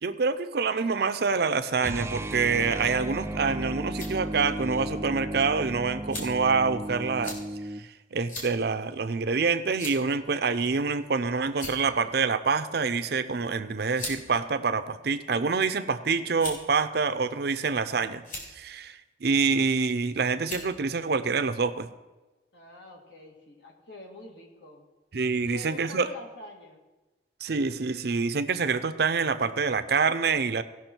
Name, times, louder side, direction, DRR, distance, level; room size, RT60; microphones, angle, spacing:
voice 1, 0.0-7.3 8.1-18.2 18.6-21.9 25.1-26.1 27.4-30.6, right 4 dB, 60° right, 11 dB, 0.6 m, -26 dB
sound 1, 1.8-7.9, right 1 dB, 15° right, 0.3 m, -35 dB
sound 2, 3.8-4.1 4.9-5.0 6.1-6.5 7.2-7.4 8.3-8.5 8.9-9.0 9.8-10.1 11.0-11.2 11.5-12.0 13.1-13.3 13.9-14.2 15.0-15.6 16.4-16.7 17.5-17.9 18.2-18.5 19.7-20.0 20.4-20.7, left 2 dB, 45° left, 2.8 m, -38 dB
voice 2, 22.5-24.9 25.4-26.8, left 2 dB, 70° left, 1 dB, 2.1 m, -45 dB
17.0 x 5.9 x 4.5 m, 1.2 s
head